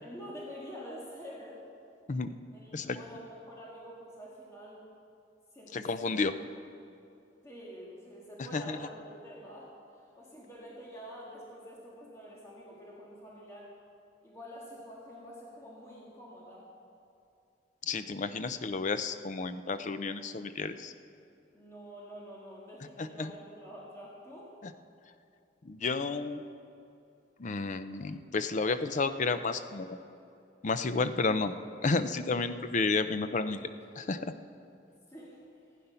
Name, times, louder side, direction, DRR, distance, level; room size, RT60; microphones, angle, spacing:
voice 1, 0.0-1.6 2.5-4.8 5.5-6.1 7.4-13.7 14.2-16.7 21.5-24.5 33.9-34.0 35.1-35.7, equal, 15° left, -5 dB, 1.7 m, -47 dB
voice 2, 5.7-6.3 8.5-8.8 17.9-20.9 23.0-23.3 25.6-26.4 27.4-30.0 30.6-31.5 31.8-33.7 34.0-34.3, left 3 dB, 45° left, 11 dB, 0.5 m, -31 dB
15.5 x 9.3 x 5.7 m, 2.6 s
head